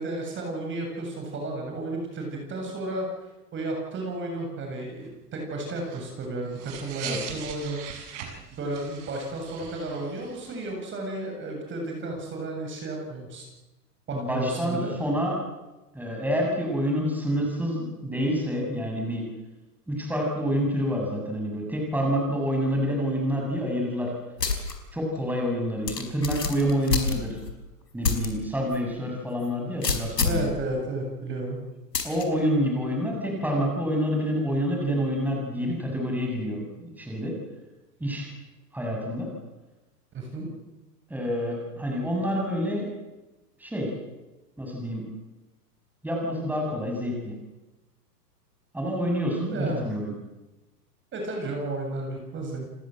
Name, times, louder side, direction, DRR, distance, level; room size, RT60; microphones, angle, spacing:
voice 1, 0.0-3.1 3.5-7.8 8.5-13.5 14.1-15.0 30.2-31.6 40.1-40.5 49.5-50.0 51.1-52.7, right 2 dB, 25° right, 1 dB, 7.6 m, -32 dB
sound 1, 5.7-10.7, right 8 dB, 45° right, 6.6 m, -40 dB
voice 2, 14.1-15.4 15.9-19.3 19.9-24.1 24.9-27.4 27.9-30.5 32.0-37.3 38.0-38.3 38.7-39.3 41.1-42.9 43.6-43.9 44.6-45.0 46.0-47.3 48.7-50.1, equal, 5° right, 0 dB, 7.7 m, -27 dB
sound 2, 24.4-24.7 25.2-25.3 25.9-27.5 28.0-28.3 28.7-28.8 29.8-30.5 31.9-32.2, left 5 dB, 85° left, 5.0 m, -26 dB
30.0 x 19.5 x 7.9 m, 1.1 s
hypercardioid pair, 110°, 48 cm